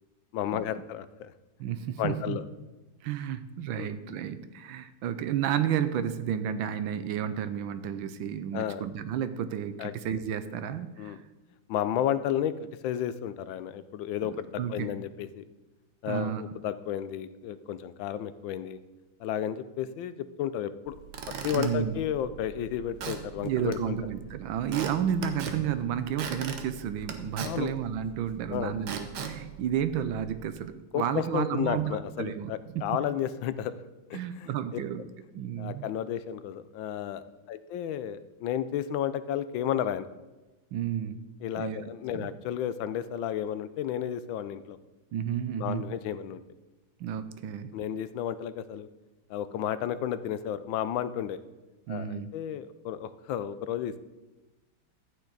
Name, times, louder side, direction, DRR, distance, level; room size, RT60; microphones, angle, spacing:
voice 1, 0.3-1.3 2.0-2.4 3.7-3.9 8.5-8.8 9.8-9.9 11.0-11.2 11.7-15.4 16.0-18.8 19.2-21.0 21.4-24.0 27.4-27.7 28.5-28.7 30.9-33.7 34.1-34.5 35.6-40.1 41.4-44.8 45.6-46.4 47.7-48.9 49.3-51.4 51.9-54.0, left 10 dB, 75° left, 14 dB, 1.3 m, -32 dB
voice 2, 1.6-2.4 3.0-11.2 14.2-14.9 16.0-16.4 21.5-21.9 23.4-32.9 34.1-35.1 35.3-35.9 40.7-41.3 41.6-41.8 42.1-42.3 45.1-45.9 47.0-47.8 51.9-52.3, right 9 dB, 80° right, 11 dB, 1.5 m, -32 dB
Squeak / Wood, 20.9-30.5, right 7 dB, 60° right, 1.5 m, -40 dB
13.5 x 8.9 x 3.9 m, 1.1 s
omnidirectional pair, 2.2 m